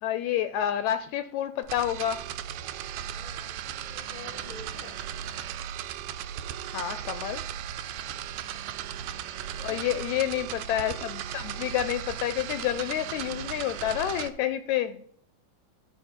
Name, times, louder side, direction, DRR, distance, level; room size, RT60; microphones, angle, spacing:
voice 1, 0.0-2.2 6.7-7.4 9.6-15.1, left 11 dB, 80° left, 11 dB, 1.8 m, -29 dB
sound 1, 1.6-14.3, right 10 dB, 80° right, 1.9 m, -37 dB
voice 2, 3.0-5.0 7.8-8.7 9.3-10.1, left 4 dB, 25° left, 4 dB, 1.4 m, -49 dB
12.5 x 5.3 x 4.3 m, 0.64 s
omnidirectional pair, 3.4 m